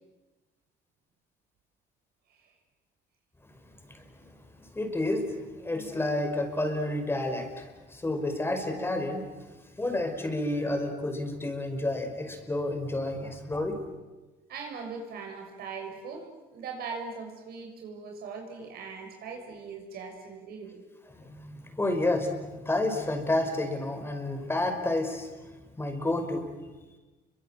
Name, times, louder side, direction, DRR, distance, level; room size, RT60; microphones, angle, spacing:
voice 1, 4.8-5.2 5.6-7.6 7.9-9.3 9.8-13.8 21.3-22.3 22.6-25.3 25.8-26.4, left 1 dB, 15° left, 5 dB, 5.4 m, -30 dB
voice 2, 14.5-20.8, right 5 dB, 65° right, 3 dB, 6.8 m, -40 dB
30.0 x 24.5 x 7.8 m, 1.2 s
cardioid pair, 110°, 17 cm